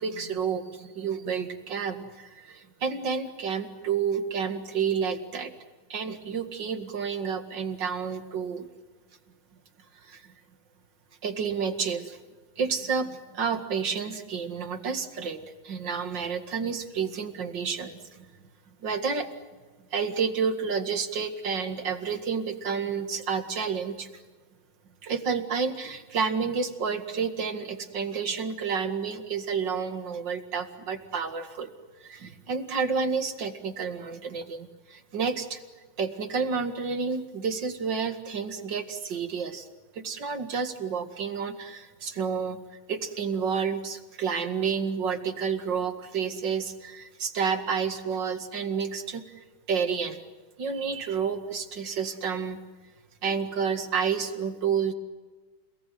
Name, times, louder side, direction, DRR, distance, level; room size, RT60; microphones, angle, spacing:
voice 1, 0.0-5.5 5.9-8.7 10.0-10.3 11.2-12.2 12.6-18.3 18.8-19.3 19.9-24.1 25.0-31.7 32.0-35.6 36.0-39.7 39.9-42.6 42.9-50.2 50.6-52.6 53.2-54.9, right 6 dB, 60° right, 8 dB, 2.6 m, -30 dB
30.0 x 19.0 x 9.3 m, 1.3 s
omnidirectional pair, 2.3 m